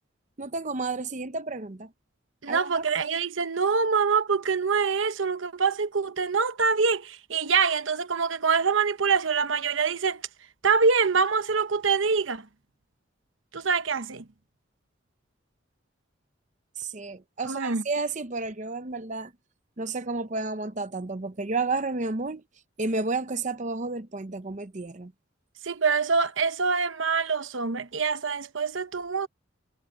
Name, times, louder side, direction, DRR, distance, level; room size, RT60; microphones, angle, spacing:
voice 1, 0.4-1.9 2.5-2.7 16.8-19.3 19.8-22.4 22.8-25.1, right 3 dB, 40° right, 0.8 m, -31 dB
voice 2, 2.4-10.2 10.6-12.5 13.5-14.3 17.4-17.8 25.6-29.3, right 5 dB, 80° right, 1.0 m, -25 dB
head